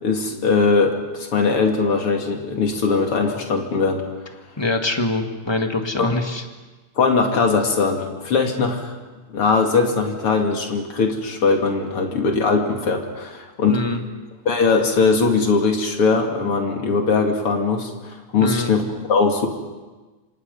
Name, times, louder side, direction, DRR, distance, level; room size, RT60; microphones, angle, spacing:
voice 1, 0.0-4.0 6.0-6.2 7.0-8.9 9.3-13.8 14.4-19.5, left 4 dB, 85° left, 3 dB, 3.4 m, -20 dB
voice 2, 4.6-6.4 13.7-14.0 18.4-18.7, left 2 dB, 15° left, 4 dB, 1.6 m, -24 dB
27.5 x 26.0 x 5.5 m, 1.2 s
omnidirectional pair, 2.4 m